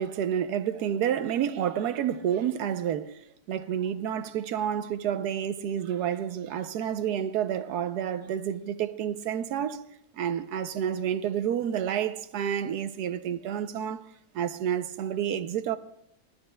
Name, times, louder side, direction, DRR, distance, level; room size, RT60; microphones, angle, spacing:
voice 1, 0.0-3.2 3.5-9.9 10.1-14.0 14.3-15.8, right 9 dB, 75° right, 1.2 m, -29 dB
30.0 x 12.5 x 2.2 m
omnidirectional pair, 1.7 m